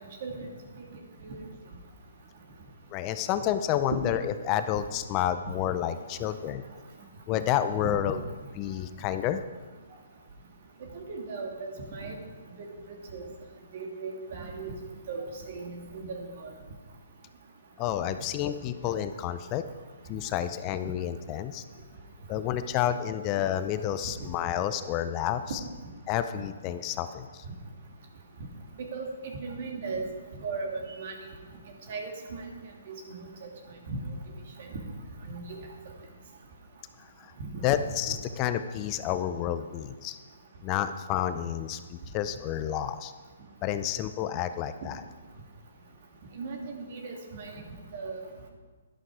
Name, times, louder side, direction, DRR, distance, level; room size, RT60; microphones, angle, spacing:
voice 1, 2.9-6.6 7.3-8.2 8.6-9.4 17.8-19.6 20.1-21.6 22.3-25.4 26.1-27.4 37.2-37.3 37.6-40.2 40.6-43.1 43.6-45.0, left 11 dB, 30° left, 11 dB, 0.5 m, -30 dB
voice 2, 10.9-12.2 12.6-12.7 13.1-13.2 13.7-14.7 15.1-16.5 28.8-30.0 30.4-31.1 31.9-32.5 32.9-33.0 33.9-34.0 35.3-35.6 37.4-37.5 38.1-38.2 46.3-47.5 47.9-48.2, right 4 dB, 50° right, 2 dB, 2.6 m, -37 dB
11.5 x 11.0 x 4.9 m, 1.4 s
hypercardioid pair, 140°, 0 cm